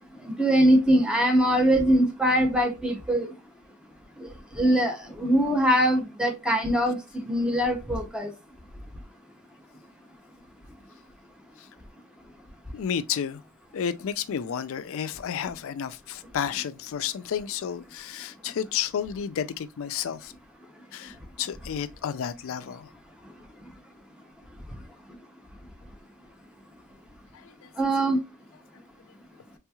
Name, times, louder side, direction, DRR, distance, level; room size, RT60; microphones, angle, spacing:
voice 1, 0.4-3.3 4.2-4.3 4.6-7.0 7.2-8.3 27.8-28.2, right 1 dB, 5° right, 0.6 m, -22 dB
voice 2, 12.7-13.4 13.7-20.3 20.9-22.9 27.3-27.7, left 8 dB, 60° left, 0.3 m, -31 dB
3.3 x 3.0 x 2.3 m
head